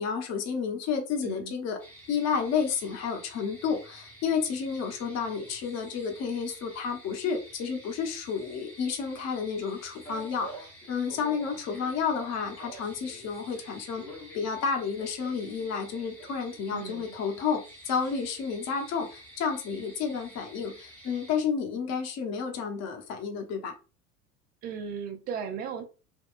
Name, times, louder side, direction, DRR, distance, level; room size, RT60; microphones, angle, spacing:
voice 1, 0.0-1.8 2.1-14.0 14.3-23.7, left 6 dB, 35° left, 0.8 m, -31 dB
voice 2, 1.2-1.5 16.7-17.1 24.6-25.8, right 7 dB, 25° right, 0.3 m, -36 dB
sound 1, 1.8-21.4, equal, 5° left, 0.8 m, -51 dB
Male speech man speaking, 10.0-13.3 13.5-16.9, right 1 dB, 90° left, 1.4 m, -46 dB
3.6 x 2.2 x 2.4 m
figure-of-eight pair, 75°, 48 cm